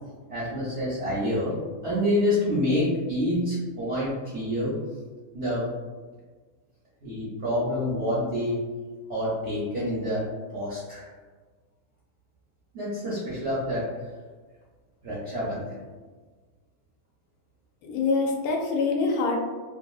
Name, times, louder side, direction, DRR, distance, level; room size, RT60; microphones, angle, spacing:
voice 1, 0.3-1.5 1.8-4.8 5.3-5.6 7.0-8.6 9.1-10.2 10.5-11.1 12.7-13.9 15.0-15.7, left 1 dB, 65° right, -7 dB, 0.7 m, -27 dB
voice 2, 17.8-19.4, left 4 dB, 70° left, 0 dB, 1.0 m, -25 dB
2.8 x 2.5 x 2.3 m, 1.4 s
omnidirectional pair, 1.8 m